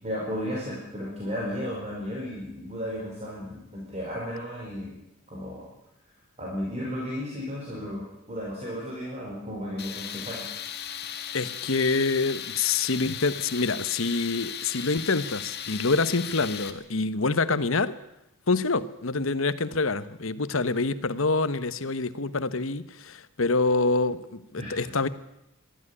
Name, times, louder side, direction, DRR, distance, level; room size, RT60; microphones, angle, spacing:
voice 1, 0.0-5.0 5.3-5.7 6.4-10.4 24.6-24.8, equal, 30° right, -3 dB, 5.1 m, -34 dB
Tools, 9.8-16.7, left 9 dB, 50° left, 1.7 m, -37 dB
voice 2, 11.3-17.9 18.5-25.1, left 3 dB, 75° left, 14 dB, 1.1 m, -26 dB
22.5 x 13.5 x 9.9 m, 0.85 s
head